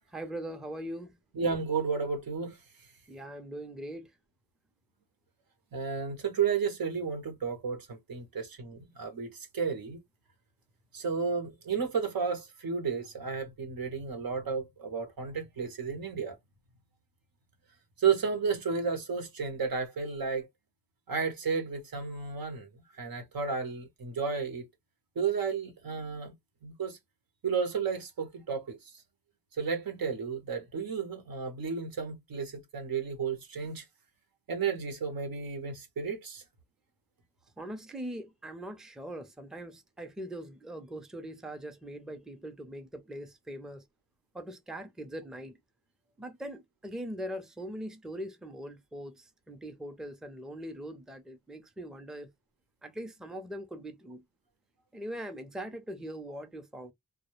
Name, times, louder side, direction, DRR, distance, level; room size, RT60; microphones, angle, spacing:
voice 1, 0.1-1.1 3.1-4.2 37.6-43.9 44.3-45.6 46.2-52.3 52.8-54.2 54.9-56.9, right 1 dB, ahead, 0.4 m, -41 dB
voice 2, 1.4-2.6 5.7-10.0 10.9-16.4 18.0-20.5 21.1-22.7 23.0-24.7 25.2-26.3 26.6-27.0 27.4-28.8 29.6-33.8 34.5-36.4, right 5 dB, 85° right, 0.8 m, -32 dB
2.2 x 2.0 x 3.0 m
wide cardioid pair, 75°, 34 cm